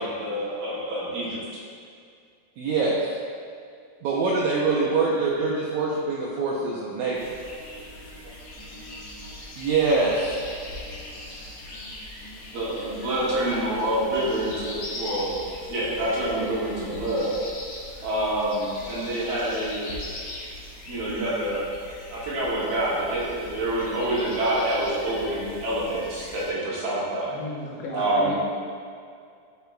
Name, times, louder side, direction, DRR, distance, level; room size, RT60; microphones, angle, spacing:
voice 1, 0.0-1.4 12.5-15.3 15.7-17.3 18.0-19.9 20.9-21.6 22.1-27.4 27.9-28.4, right 1 dB, 70° right, -8 dB, 3.3 m, -27 dB
voice 2, 2.6-3.0 4.0-7.4 9.6-10.4, right 4 dB, 85° right, -4 dB, 1.7 m, -24 dB
sound 1, 7.1-26.5, left 1 dB, 60° left, 1.6 m, -40 dB
voice 3, 27.3-28.4, left 2 dB, 75° left, -3 dB, 2.8 m, -34 dB
12.0 x 5.6 x 2.3 m, 2.3 s
omnidirectional pair, 4.2 m